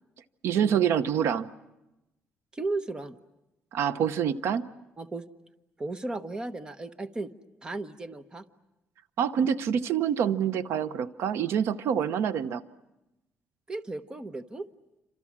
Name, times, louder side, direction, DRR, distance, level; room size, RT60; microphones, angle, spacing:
voice 1, 0.4-1.5 3.7-4.6 9.2-12.6, right 8 dB, 75° right, 13 dB, 0.9 m, -26 dB
voice 2, 2.5-3.2 5.0-5.3 5.8-7.3 7.6-8.4 13.7-14.7, right 2 dB, 20° right, 10 dB, 1.0 m, -35 dB
28.5 x 26.5 x 7.4 m, 0.96 s
cardioid pair, 160°, 4 cm